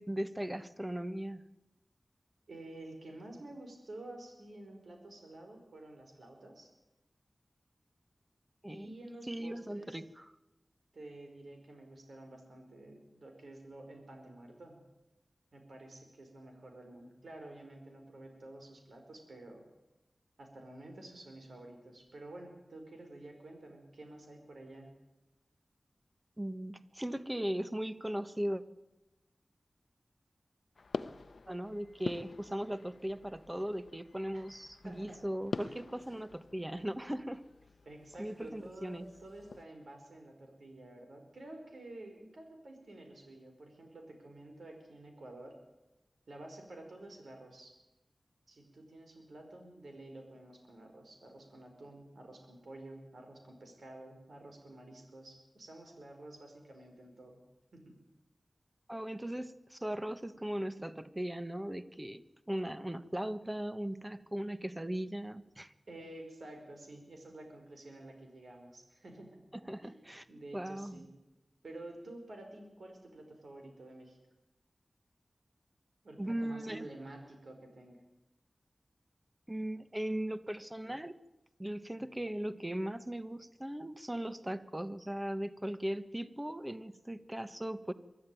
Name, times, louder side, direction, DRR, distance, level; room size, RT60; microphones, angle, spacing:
voice 1, 0.0-1.4 8.6-8.9 9.3-10.2 26.4-28.6 31.5-37.4 38.2-39.1 58.9-65.7 69.7-70.2 70.5-71.1 76.2-76.8 79.5-81.1 81.6-87.9, right 1 dB, 15° right, 12 dB, 1.3 m, -38 dB
voice 2, 2.5-6.7 8.7-10.0 10.9-14.8 15.5-19.7 20.4-24.9 34.3-34.4 34.8-35.2 35.6-35.8 37.8-45.5 46.3-47.7 48.5-57.4 57.7-58.0 65.9-69.4 69.8-70.0 70.3-71.1 71.6-74.2 76.0-78.0, right 1 dB, 90° right, 3 dB, 5.0 m, -50 dB
sound 1, 30.7-39.6, left 4 dB, 75° left, 0.8 m, -46 dB
24.0 x 13.5 x 9.3 m, 0.98 s
wide cardioid pair, 80°, 0 cm